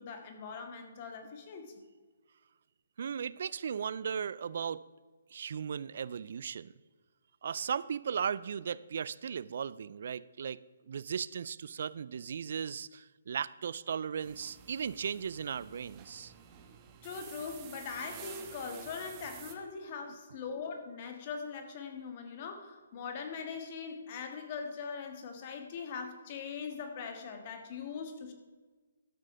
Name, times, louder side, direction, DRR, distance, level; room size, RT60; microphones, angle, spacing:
voice 1, 0.0-1.7 17.0-28.3, left 5 dB, 40° left, 5 dB, 1.7 m, -41 dB
voice 2, 3.0-4.8 5.3-6.7 7.4-10.6 10.9-16.3, right 7 dB, 60° right, 20 dB, 0.4 m, -36 dB
sound 1, 14.2-19.5, right 7 dB, 25° right, 1.1 m, -50 dB
13.0 x 6.2 x 5.6 m, 1.4 s
figure-of-eight pair, 140°, 0 cm